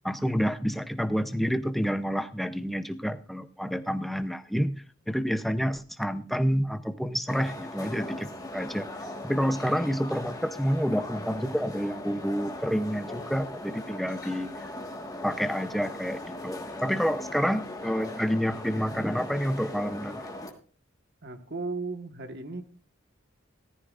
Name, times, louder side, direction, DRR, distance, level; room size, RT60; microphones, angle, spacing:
voice 1, 0.0-4.8 5.1-8.9 9.2-14.5 15.2-20.2, equal, ahead, 11 dB, 0.6 m, -29 dB
sound 1, 7.3-20.5, left 1 dB, 20° left, 1.5 m, -39 dB
voice 2, 21.2-22.6, right 3 dB, 55° right, 7 dB, 1.4 m, -35 dB
14.5 x 13.5 x 2.4 m, 0.41 s
head